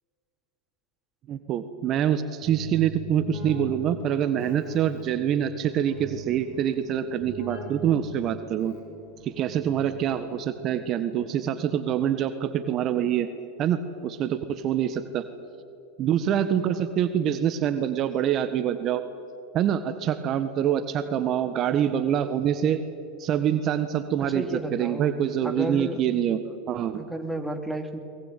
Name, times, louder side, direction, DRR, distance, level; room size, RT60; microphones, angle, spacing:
voice 1, 1.3-8.7 9.2-13.3 13.6-15.3 16.0-19.0 19.5-22.8 23.2-26.4 26.7-27.0, right 9 dB, 45° right, 10 dB, 1.5 m, -25 dB
Keyboard (musical), 2.4-10.3, right 2 dB, 55° left, 7.2 m, -42 dB
voice 2, 24.3-25.1 25.4-26.0 26.4-26.6 26.9-28.0, right 1 dB, ahead, 5 dB, 2.7 m, -32 dB
22.5 x 21.5 x 9.2 m, 2.6 s
hypercardioid pair, 100°, 0 cm